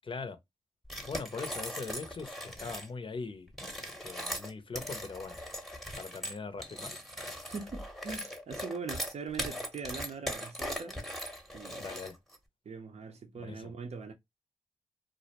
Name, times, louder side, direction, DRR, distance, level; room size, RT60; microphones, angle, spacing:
voice 1, 0.0-0.4 1.0-3.5 3.8-5.4 6.0-7.0 11.8-12.2 13.4-13.7, left 4 dB, 40° left, 0.6 m, -41 dB
sound 1, 0.9-2.9 3.5-12.4, equal, ahead, 0.8 m, -39 dB
voice 2, 7.5-11.0 11.5-11.9 12.7-14.1, right 5 dB, 55° right, 0.6 m, -41 dB
2.4 x 2.1 x 2.8 m
cardioid pair, 50°, 13 cm